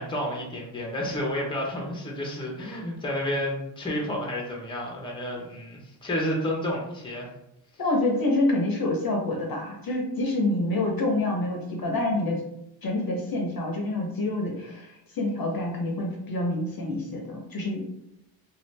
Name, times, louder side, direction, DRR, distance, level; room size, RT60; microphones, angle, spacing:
voice 1, 0.0-7.3, left 1 dB, 10° left, -1 dB, 0.7 m, -30 dB
voice 2, 7.8-12.4 12.8-14.9 15.2-17.9, left 2 dB, 50° left, 1 dB, 0.8 m, -27 dB
2.6 x 2.4 x 3.2 m, 0.83 s
cardioid pair, 85°, 47 cm